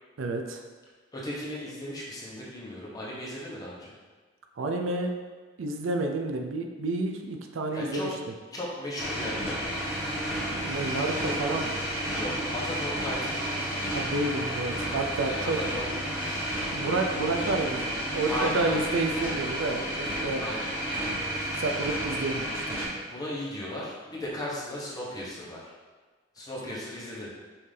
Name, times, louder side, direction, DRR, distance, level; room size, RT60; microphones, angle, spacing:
voice 1, 0.2-0.6 4.6-5.1 5.6-8.1 10.5-11.8 13.9-15.6 16.7-20.4 21.5-22.8, right 2 dB, 85° right, 4 dB, 0.5 m, -30 dB
voice 2, 1.1-3.9 7.7-8.1 8.5-9.6 11.0-11.2 12.1-13.4 15.2-15.9 18.3-18.9 20.4-20.7 23.1-25.7 26.3-27.3, left 1 dB, 20° left, -6 dB, 1.0 m, -36 dB
sound 1, 9.0-22.9, equal, 15° right, 1.1 m, -31 dB
5.6 x 2.8 x 3.3 m, 1.4 s
head